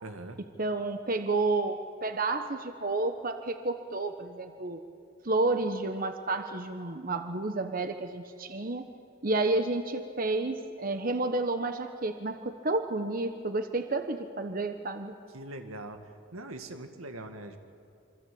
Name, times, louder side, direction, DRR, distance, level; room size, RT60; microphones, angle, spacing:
voice 1, 0.0-0.4 15.3-17.6, right 1 dB, 85° right, 6 dB, 2.1 m, -42 dB
voice 2, 0.6-4.8 5.2-8.9 9.2-15.2, right 2 dB, 40° right, 8 dB, 1.1 m, -30 dB
27.0 x 24.5 x 8.7 m, 2.4 s
head